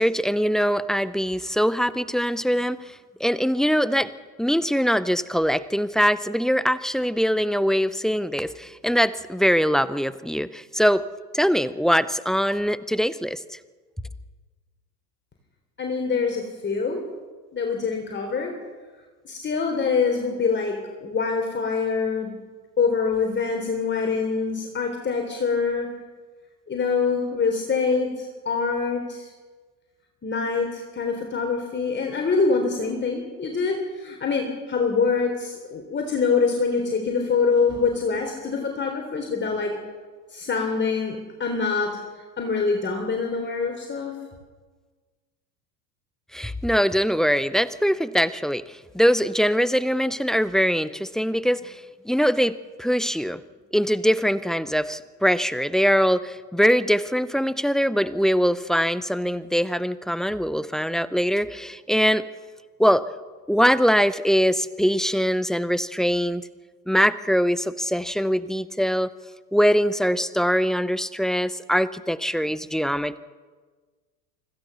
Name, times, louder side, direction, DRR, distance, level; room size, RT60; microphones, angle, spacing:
voice 1, 0.0-2.9 3.2-4.1 4.4-11.0 11.3-13.4 46.3-53.4 53.7-62.3 62.8-63.0 63.5-66.5 66.9-69.1 69.5-73.2, equal, ahead, 16 dB, 0.6 m, -22 dB
voice 2, 15.8-17.0 17.5-18.5 19.2-22.3 22.8-25.9 26.7-29.3 30.2-39.8 40.3-42.0 42.4-44.2, left 5 dB, 20° left, 3 dB, 3.6 m, -25 dB
25.5 x 16.0 x 6.9 m, 1.4 s
figure-of-eight pair, 80°, 49 cm